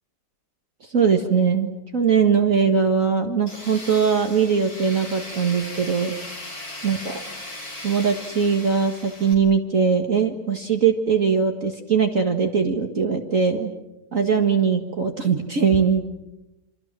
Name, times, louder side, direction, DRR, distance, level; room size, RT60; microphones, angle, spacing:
voice 1, 0.8-6.1 6.8-7.2 7.8-13.7 14.1-16.1, right 6 dB, 45° right, 4 dB, 2.1 m, -21 dB
Tools, 3.5-9.3, left 1 dB, 50° left, 6.0 m, -37 dB
28.0 x 27.0 x 7.5 m, 0.92 s
omnidirectional pair, 2.0 m